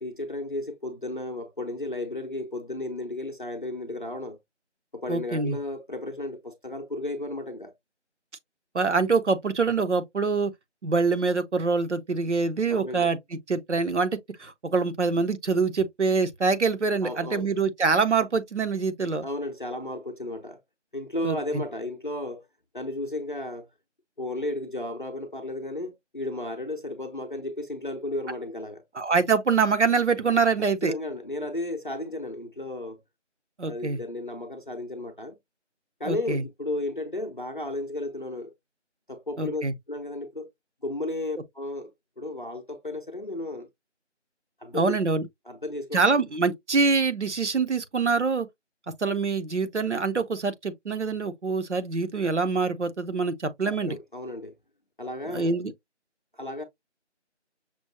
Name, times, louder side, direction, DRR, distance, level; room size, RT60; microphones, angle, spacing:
voice 1, 0.0-4.4 4.9-7.7 12.7-13.1 17.0-17.5 19.2-20.6 20.9-22.5 22.7-23.7 24.2-28.9 30.6-33.0 33.6-35.4 36.0-38.5 39.1-40.5 40.8-41.9 42.2-43.7 44.6-45.0 45.5-46.0 53.6-54.6 55.0-55.6 56.3-56.6, left 1 dB, 45° left, 0.6 m, -34 dB
voice 2, 5.1-5.6 8.7-10.5 10.8-19.2 21.2-21.6 28.9-30.9 33.6-34.0 36.1-36.4 39.4-39.7 44.7-45.2 45.9-48.5 49.0-54.0 55.3-55.7, right 4 dB, 70° right, 0.8 m, -25 dB
6.1 x 2.0 x 2.8 m
figure-of-eight pair, 170°, 36 cm